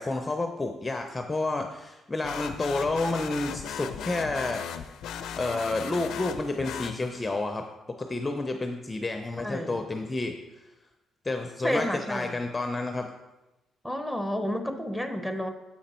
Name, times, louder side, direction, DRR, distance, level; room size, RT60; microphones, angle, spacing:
voice 1, 0.0-4.7 5.4-7.7 8.0-10.4 11.2-13.1, left 2 dB, 20° left, 5 dB, 0.5 m, -30 dB
sound 1, 2.2-7.4, left 8 dB, 80° left, 0.4 m, -37 dB
voice 2, 9.4-9.8 11.6-12.3 13.8-15.5, equal, 5° right, 6 dB, 0.9 m, -30 dB
7.3 x 5.0 x 4.3 m, 1.0 s
cardioid pair, 90°, 0 cm